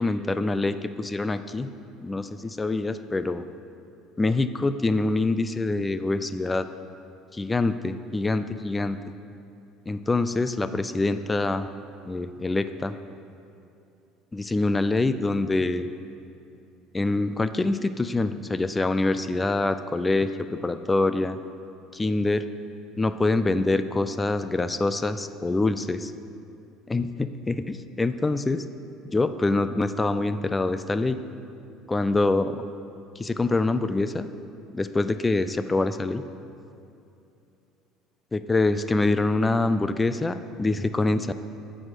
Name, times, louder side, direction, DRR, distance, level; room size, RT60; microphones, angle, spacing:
voice 1, 0.0-1.7 2.0-3.5 4.2-6.7 7.3-9.0 9.9-11.7 12.0-12.9 14.3-15.9 16.9-21.4 21.9-22.5 23.0-26.1 26.9-28.6 29.1-31.2 31.9-32.6 33.2-34.3 34.7-36.2 38.3-41.3, left 2 dB, 15° left, 12 dB, 0.4 m, -25 dB
7.8 x 6.3 x 7.5 m, 2.7 s
supercardioid pair, 110°, 0 cm